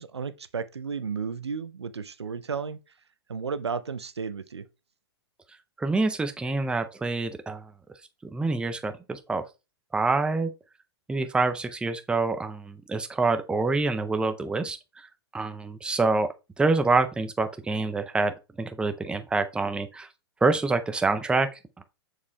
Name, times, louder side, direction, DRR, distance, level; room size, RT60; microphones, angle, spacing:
voice 1, 0.0-2.8 3.3-4.7, right 5 dB, 90° right, 0.5 m, -33 dB
voice 2, 5.8-7.7 8.2-9.5 9.9-10.5 11.1-15.1 15.3-20.1 20.4-21.8, right 3 dB, 5° right, 0.5 m, -26 dB
7.1 x 6.4 x 2.2 m
hypercardioid pair, 105°, 14 cm